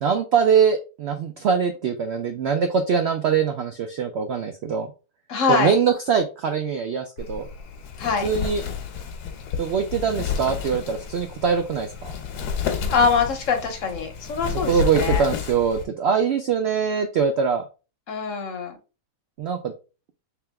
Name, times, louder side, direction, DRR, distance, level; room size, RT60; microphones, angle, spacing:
voice 1, 0.0-4.9 5.5-7.5 8.2-8.6 9.6-12.1 14.7-17.6 19.4-19.7, right 6 dB, 85° right, 6 dB, 0.5 m, -23 dB
voice 2, 5.3-5.8 8.0-8.3 12.9-15.3 18.1-18.8, left 5 dB, 60° left, 5 dB, 1.1 m, -23 dB
Wind, 7.2-15.9, left 7 dB, 85° left, 1.3 m, -31 dB
3.4 x 2.9 x 3.4 m, 0.32 s
omnidirectional pair, 1.7 m